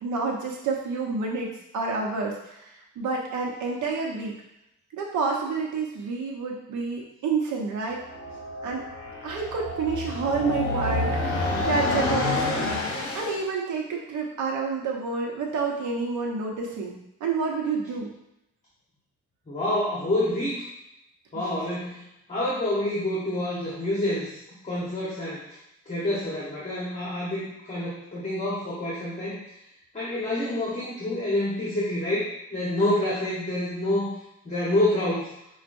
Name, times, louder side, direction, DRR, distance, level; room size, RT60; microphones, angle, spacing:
voice 1, 0.0-2.4 3.0-4.3 4.9-8.0 8.6-8.8 9.2-12.8 13.1-18.1, right 4 dB, 75° right, -1 dB, 1.0 m, -29 dB
sound 1, 8.0-13.4, left 2 dB, 45° left, 1.0 m, -28 dB
voice 2, 19.5-20.6 21.3-22.0 22.3-25.4 25.9-29.4 29.9-34.1 34.4-35.3, left 1 dB, 25° left, -7 dB, 1.1 m, -27 dB
5.5 x 2.4 x 2.6 m, 0.83 s
cardioid pair, 90°, 30 cm